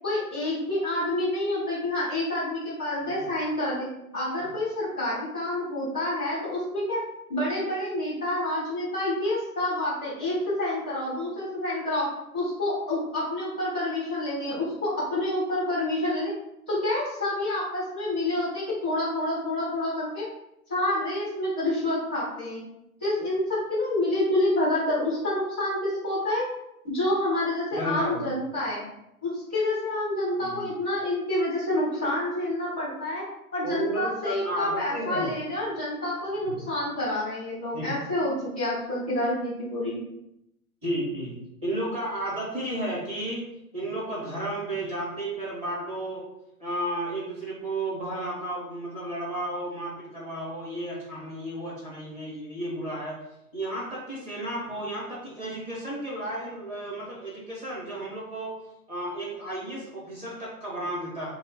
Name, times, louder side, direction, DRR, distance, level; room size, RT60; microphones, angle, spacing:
voice 1, 0.0-3.9 4.1-7.0 7.3-12.1 12.3-16.3 16.7-20.3 20.7-22.6 23.0-26.4 26.8-28.8 29.2-33.2 33.5-40.0, left 1 dB, 10° left, -15 dB, 0.3 m, -28 dB
voice 2, 27.7-28.3 30.4-30.6 33.6-35.4 36.5-36.7 37.7-37.9 40.8-41.3 41.6-43.5 43.7-46.2 46.6-53.2 53.5-58.5 58.9-61.3, right 1 dB, 15° right, -7 dB, 0.7 m, -33 dB
2.9 x 2.0 x 4.0 m, 0.83 s
hypercardioid pair, 130°, 45 cm